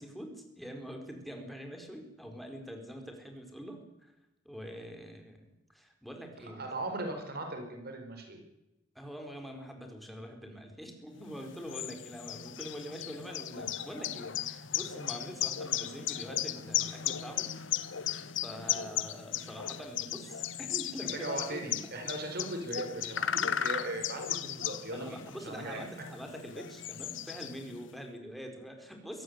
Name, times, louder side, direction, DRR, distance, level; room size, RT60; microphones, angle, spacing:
voice 1, 0.0-4.1 4.4-6.6 8.9-17.6 18.4-21.7 22.8-22.9 24.9-29.2, equal, ahead, 4 dB, 4.4 m, -44 dB
voice 2, 6.4-8.4 21.1-25.9, right 2 dB, 55° right, 4 dB, 4.9 m, -38 dB
sound 1, 11.3-27.9, left 10 dB, 75° left, 1.1 m, -36 dB
23.5 x 16.5 x 9.6 m, 0.94 s
head